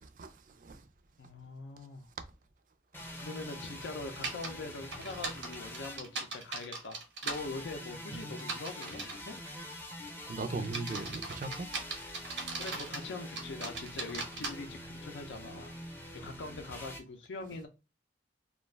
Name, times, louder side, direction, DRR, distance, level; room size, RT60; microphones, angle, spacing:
voice 1, 0.0-0.8 8.1-8.3 10.2-11.7, right 3 dB, 45° right, 0.4 m, -39 dB
voice 2, 1.2-2.1 3.2-7.0 7.2-9.4 12.6-15.7 16.2-17.7, left 3 dB, 85° left, 0.5 m, -43 dB
sound 1, 2.9-6.7 7.3-17.0, left 1 dB, 10° left, 0.4 m, -45 dB
sound 2, 4.2-4.5 4.9-7.4 8.4-9.2 9.8-10.1 10.6-13.0 13.4-14.5, right 3 dB, 85° right, 1.0 m, -38 dB
2.4 x 2.2 x 3.1 m
head